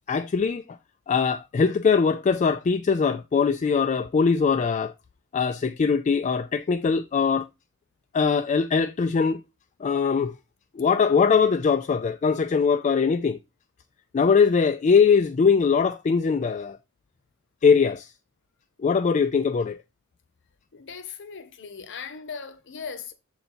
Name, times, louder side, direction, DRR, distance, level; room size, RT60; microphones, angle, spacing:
voice 1, 0.1-0.6 1.1-4.9 5.3-7.4 8.1-9.4 9.8-10.3 10.7-13.4 14.1-16.8 17.6-18.1 18.8-19.8, left 5 dB, 30° left, 0.3 m, -21 dB
voice 2, 20.7-23.1, left 6 dB, 55° left, 0.9 m, -38 dB
6.6 x 4.0 x 4.2 m
head